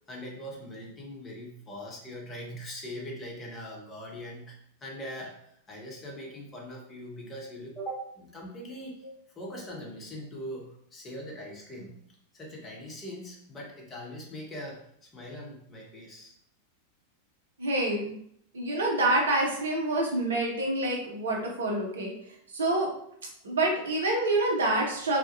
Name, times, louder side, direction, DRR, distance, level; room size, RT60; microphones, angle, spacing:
voice 1, 0.1-5.3 5.7-9.1 9.4-12.0 12.3-16.3, equal, 20° left, -2 dB, 0.7 m, -41 dB
voice 2, 17.6-18.2 18.5-22.1 22.5-22.9 23.4-25.2, right 2 dB, 65° right, -1 dB, 0.6 m, -27 dB
2.2 x 2.0 x 2.7 m, 0.70 s
figure-of-eight pair, 90°, 0 cm